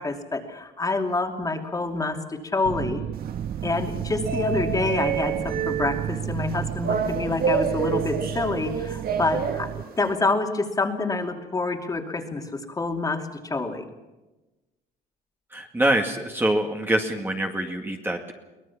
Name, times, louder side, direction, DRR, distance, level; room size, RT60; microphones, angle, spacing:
voice 1, 0.0-3.0 3.6-13.9, left 3 dB, 20° left, 4 dB, 2.7 m, -27 dB
sound 1, 2.6-9.8, right 9 dB, 45° right, 0.6 m, -32 dB
sound 2, 3.1-10.1, right 7 dB, 60° right, 1.9 m, -29 dB
voice 2, 15.5-18.3, right 1 dB, 10° right, 3 dB, 2.1 m, -25 dB
23.5 x 18.5 x 7.2 m, 1.1 s
cardioid pair, 110°, 17 cm